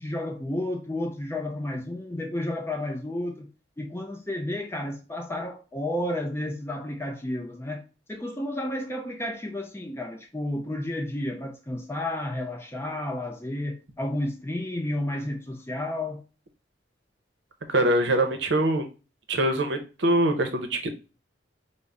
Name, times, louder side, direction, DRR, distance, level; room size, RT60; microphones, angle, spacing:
voice 1, 0.0-3.5 3.8-7.8 8.1-16.2, left 1 dB, 15° left, 0.5 m, -31 dB
voice 2, 17.7-18.8 19.3-21.0, right 1 dB, 65° right, 0.7 m, -23 dB
5.3 x 2.0 x 3.5 m
head